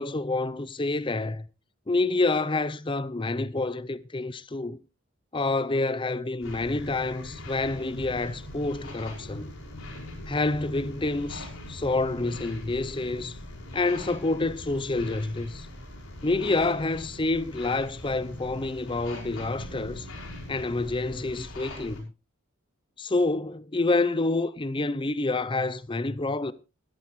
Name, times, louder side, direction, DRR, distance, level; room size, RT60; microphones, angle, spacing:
voice 1, 0.0-1.5 1.9-4.8 5.3-9.5 10.3-13.4 13.7-15.7 16.2-20.1 20.5-22.1 23.0-26.5, left 2 dB, 25° left, 0.6 m, -28 dB
sound 1, 6.4-22.0, left 1 dB, 80° left, 5.7 m, -41 dB
17.0 x 12.5 x 3.1 m
head